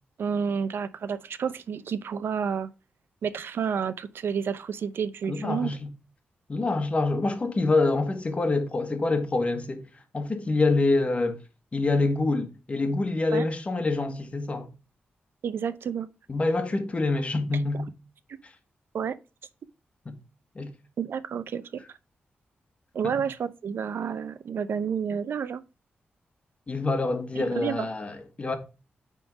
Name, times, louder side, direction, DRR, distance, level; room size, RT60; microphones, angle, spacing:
voice 1, 0.2-2.7 3.2-5.7 13.3-13.4 15.4-16.1 18.9-19.2 21.0-21.8 22.9-25.6 27.6-27.9, right 7 dB, 75° right, 0.7 m, -30 dB
voice 2, 5.3-5.9 6.5-9.8 10.1-11.4 11.7-14.7 16.3-17.9 20.0-20.2 20.5-20.7 23.0-23.1 26.7-28.6, left 3 dB, 35° left, 1.5 m, -26 dB
9.1 x 3.8 x 4.8 m
wide cardioid pair, 115°, 4 cm